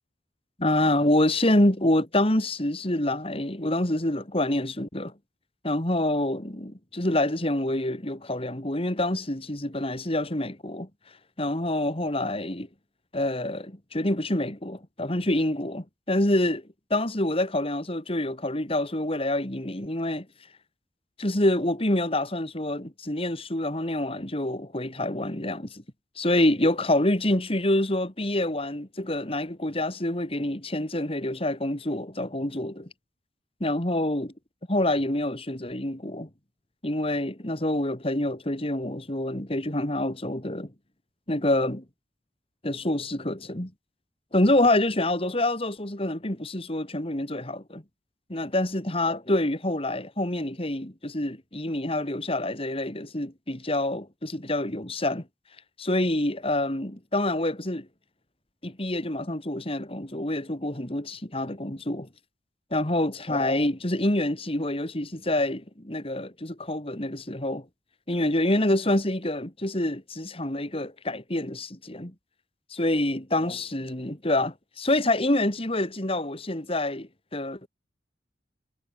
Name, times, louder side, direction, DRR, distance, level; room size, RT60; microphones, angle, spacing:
voice 1, 0.6-5.1 5.6-10.9 11.4-12.7 13.1-16.6 16.9-20.2 21.2-25.8 26.2-32.9 33.6-34.3 34.7-36.3 36.8-40.7 41.3-41.8 42.6-43.7 44.3-47.8 48.3-55.2 55.8-57.9 58.6-62.1 62.7-67.6 68.1-72.1 72.7-77.7, left 1 dB, 35° left, 2.9 m, -27 dB
head